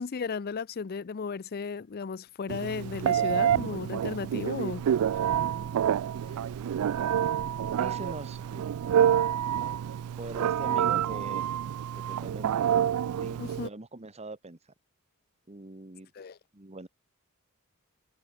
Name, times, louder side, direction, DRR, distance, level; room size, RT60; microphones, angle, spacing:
voice 1, 0.0-5.2 13.4-13.7 16.2-16.4, left 5 dB, 45° left, 0.4 m, -35 dB
Telephone, 2.5-13.7, right 9 dB, 75° right, 0.3 m, -28 dB
Buzz, 4.6-10.7, left 1 dB, 65° left, 6.0 m, -54 dB
voice 2, 7.8-8.6 10.2-11.6 12.1-12.7 13.1-14.6 15.5-16.1 16.5-16.9, right 2 dB, 30° right, 1.4 m, -42 dB
head